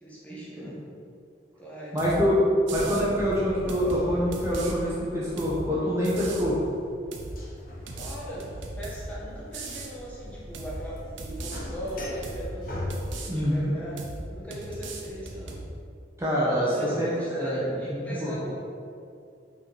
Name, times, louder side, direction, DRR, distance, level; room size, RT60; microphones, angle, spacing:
voice 1, 0.0-0.8 1.6-2.1 7.9-12.9 13.2-15.6 16.6-18.5, equal, 10° left, -8 dB, 1.5 m, -39 dB
voice 2, 1.9-2.4 2.7-6.6 13.3-13.7 16.2-17.6 17.9-18.3, equal, 15° right, -8 dB, 1.0 m, -26 dB
sound 1, 2.0-2.2 2.7-3.1 3.7-4.7 5.4-5.6 6.0-6.5 7.1-7.4 7.9-9.1 9.5-9.9 10.5-10.8 11.2-11.6 12.2-12.5 12.9-13.3 14.0-14.2 14.5-15.7, right 2 dB, 90° right, 0.7 m, -38 dB
sound 2, 2.7-15.1, left 1 dB, 50° left, 1.0 m, -40 dB
5.5 x 4.7 x 4.2 m, 2.4 s
head